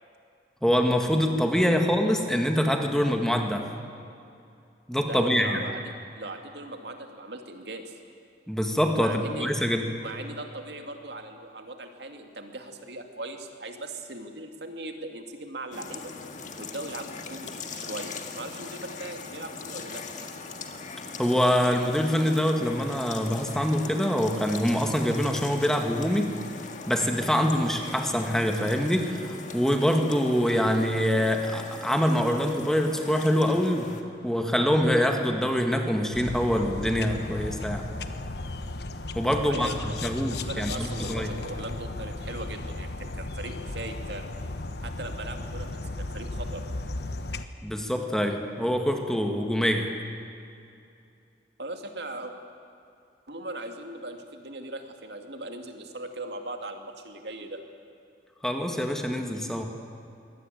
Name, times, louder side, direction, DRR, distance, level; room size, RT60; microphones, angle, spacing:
voice 1, 0.6-3.7 4.9-5.6 8.5-9.9 21.2-26.3 26.9-34.0 34.2-37.9 39.2-41.3 47.6-49.9 58.4-59.6, equal, 5° left, 4 dB, 1.8 m, -25 dB
voice 2, 5.1-5.8 6.2-7.9 8.9-9.7 9.9-16.1 16.6-20.3 39.3-44.3 44.8-46.7 51.6-52.3 53.3-57.6, right 2 dB, 70° right, 5 dB, 2.2 m, -39 dB
sound 1, 15.7-34.0, left 4 dB, 45° left, 1.8 m, -40 dB
sound 2, 36.1-47.5, left 2 dB, 65° left, 1.2 m, -35 dB
23.5 x 17.5 x 9.2 m, 2.6 s
head